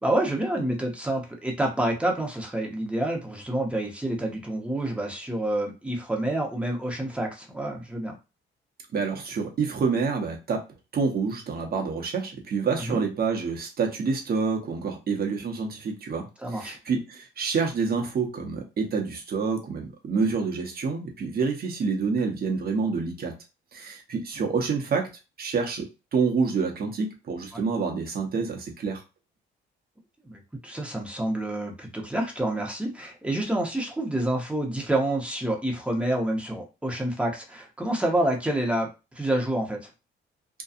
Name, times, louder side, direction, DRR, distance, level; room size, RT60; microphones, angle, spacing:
voice 1, 0.0-8.2 12.8-13.0 16.4-16.8 27.5-27.6 30.2-38.9 39.1-39.9, right 1 dB, 5° right, 0 dB, 0.8 m, -28 dB
voice 2, 8.9-10.6 10.9-23.3 23.7-25.1 25.4-29.0, right 5 dB, 50° right, 2 dB, 0.9 m, -27 dB
2.7 x 2.3 x 2.4 m, 0.29 s
cardioid pair, 90°, 20 cm